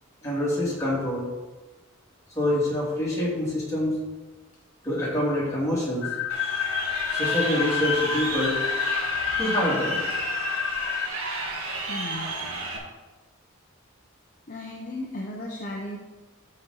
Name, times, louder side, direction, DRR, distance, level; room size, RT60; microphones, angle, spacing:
voice 1, 0.2-1.3 2.3-4.0 4.8-6.0 7.1-8.6 9.4-10.1, left 1 dB, 15° left, -7 dB, 2.9 m, -26 dB
sound 1, 6.0-11.1, left 11 dB, 65° left, 0.3 m, -29 dB
Crowd, 6.3-12.8, right 3 dB, 75° right, 1.7 m, -32 dB
voice 2, 11.9-12.3 14.5-16.0, left 1 dB, 40° left, -2 dB, 0.8 m, -35 dB
12.5 x 4.3 x 4.0 m, 1.2 s
head